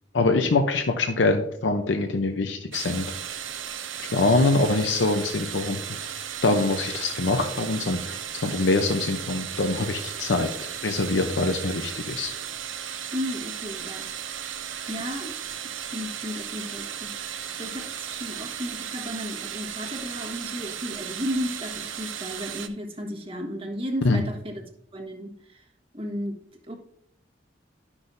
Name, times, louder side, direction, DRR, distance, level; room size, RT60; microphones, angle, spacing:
voice 1, 0.1-3.1 4.0-6.1 6.4-12.3 24.0-24.2, left 3 dB, 70° left, 5 dB, 0.7 m, -24 dB
sound 1, 2.7-22.7, right 9 dB, 80° right, 0.6 m, -35 dB
voice 2, 13.1-14.1 14.9-15.3 15.6-17.3 17.6-25.6 25.9-26.4 26.7-26.8, equal, 30° right, 1 dB, 1.3 m, -34 dB
11.5 x 6.0 x 2.6 m, 0.77 s
head